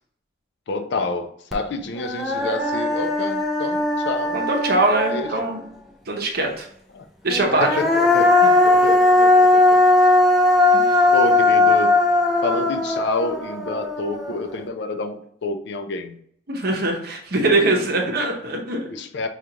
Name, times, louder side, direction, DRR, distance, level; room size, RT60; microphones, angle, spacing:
voice 1, 0.7-4.4 5.1-5.3 6.9-7.1 7.4-9.8 11.1-12.0 12.4-16.2 18.9-19.3, left 3 dB, 60° left, 7 dB, 0.4 m, -28 dB
Human voice, 1.5-1.6 2.0-5.6 7.3-14.5, left 2 dB, ahead, 0.4 m, -18 dB
voice 2, 4.3-5.6 6.1-6.7 7.2-7.7 10.7-11.0 16.5-18.9, right 2 dB, 55° right, 1 dB, 0.8 m, -22 dB
4.9 x 2.4 x 2.8 m, 0.65 s
head